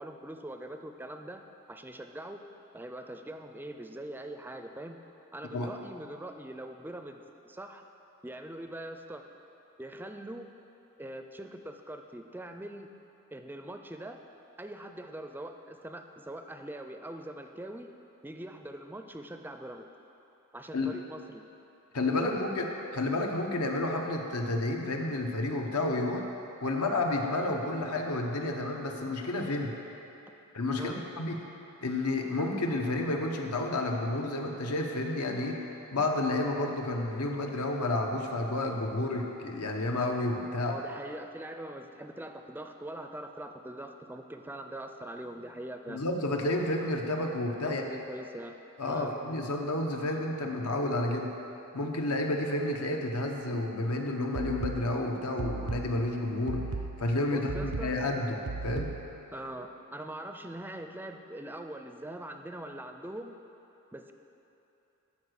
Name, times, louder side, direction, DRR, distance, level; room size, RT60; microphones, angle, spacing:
voice 1, 0.0-1.4 1.7-2.4 2.7-5.0 5.3-7.8 8.2-9.2 9.8-10.5 11.0-12.9 13.3-14.2 14.6-17.9 18.2-19.9 20.5-21.5 22.2-22.5 30.8-31.0 40.6-46.0 47.6-48.6 48.9-49.1 57.3-57.9 59.3-63.3 63.9-64.1, right 1 dB, 10° right, 5 dB, 0.4 m, -42 dB
voice 2, 21.9-26.2 26.6-29.7 30.5-31.4 31.8-35.6 35.9-40.8 45.9-47.8 48.8-51.3 51.7-56.6 57.0-58.9, left 2 dB, 85° left, 2 dB, 1.0 m, -30 dB
sound 1, 54.3-59.3, right 3 dB, 80° right, 0.6 m, -38 dB
12.5 x 5.0 x 6.5 m, 3.0 s
head